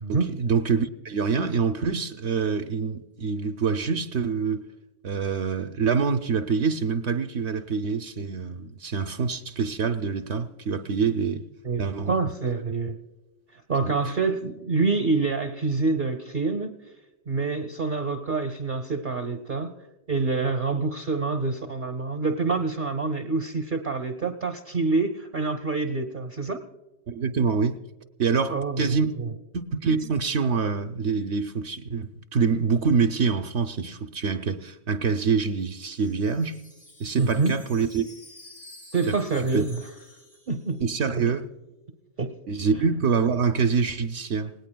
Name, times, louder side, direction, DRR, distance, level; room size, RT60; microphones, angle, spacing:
voice 1, 0.1-4.6 5.0-11.5 11.8-12.1 13.8-14.0 27.1-27.8 28.2-29.1 29.5-36.6 37.0-38.0 39.1-39.2 39.5-39.6 40.8-41.5 42.5-44.5, right 5 dB, 70° right, 1.0 m, -25 dB
voice 2, 11.6-13.0 13.5-16.8 17.3-19.7 20.1-26.6 28.5-29.3 37.2-37.5 38.9-39.8 40.5-40.8 42.2-42.4, right 4 dB, 45° right, 1.0 m, -26 dB
Wind chime, 35.1-41.1, left 1 dB, 60° left, 3.9 m, -50 dB
27.5 x 18.5 x 2.2 m
omnidirectional pair, 1.2 m